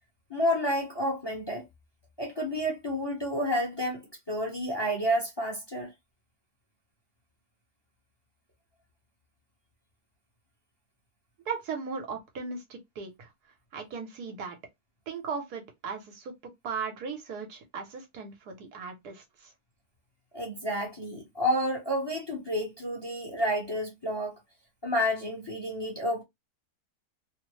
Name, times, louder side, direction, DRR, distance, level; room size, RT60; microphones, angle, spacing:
voice 1, 0.3-1.6 2.2-4.0 4.3-5.9 20.3-24.4 24.8-26.2, equal, 20° left, 0.8 m, -30 dB
voice 2, 11.5-13.3 13.7-14.6 15.1-16.3 16.6-19.5, right 5 dB, 75° right, 1.4 m, -37 dB
3.1 x 2.1 x 3.0 m
omnidirectional pair, 1.7 m